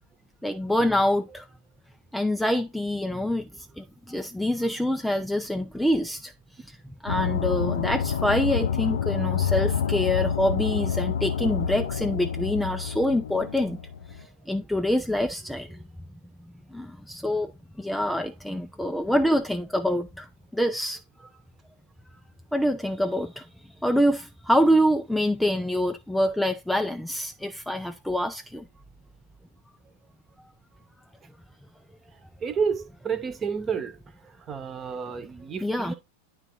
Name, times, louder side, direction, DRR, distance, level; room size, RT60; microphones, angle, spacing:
voice 1, 0.4-1.5 2.1-3.5 3.8-6.3 6.7-6.8 7.0-13.8 14.1-15.8 16.7-17.5 17.8-21.3 22.5-23.5 23.8-28.6 35.6-35.9, equal, ahead, 0.5 m, -26 dB
sound 1, 7.1-14.2, left 7 dB, 65° left, 0.5 m, -28 dB
voice 2, 14.2-14.5 32.4-34.0 34.2-35.9, right 6 dB, 25° right, 1.2 m, -31 dB
9.8 x 4.0 x 4.3 m
figure-of-eight pair, 90°, 0 cm